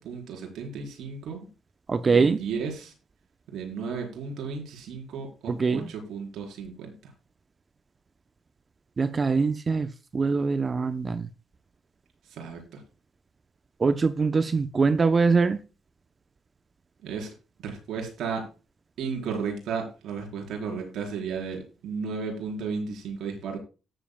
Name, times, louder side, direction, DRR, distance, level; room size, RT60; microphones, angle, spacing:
voice 1, 0.0-1.5 2.0-2.9 3.5-7.1 12.3-12.6 17.0-17.3 17.6-18.5 19.0-23.6, right 5 dB, 75° right, 4.5 m, -34 dB
voice 2, 1.9-2.4 5.5-5.9 9.0-9.9 10.1-11.3 13.8-15.6, right 4 dB, 35° right, 0.7 m, -23 dB
17.5 x 7.4 x 2.3 m
cardioid pair, 90°, 0 cm